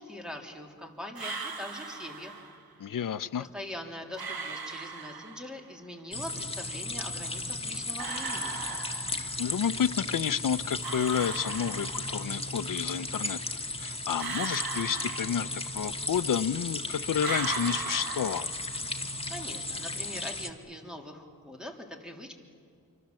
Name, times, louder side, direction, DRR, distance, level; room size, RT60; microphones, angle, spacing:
voice 1, 0.0-2.3 3.4-8.6 19.0-22.3, left 1 dB, ahead, 2 dB, 3.3 m, -42 dB
sound 1, 1.2-2.6 4.2-5.7 8.0-9.5 10.8-12.4 14.2-15.9 17.2-19.0, right 5 dB, 85° right, 1.6 m, -38 dB
voice 2, 2.8-3.5 9.4-18.5, left 8 dB, 65° left, 14 dB, 0.7 m, -30 dB
sound 2, 6.1-20.5, left 2 dB, 15° left, 1.8 m, -35 dB
27.5 x 24.5 x 7.6 m, 2.2 s
wide cardioid pair, 90°, 35 cm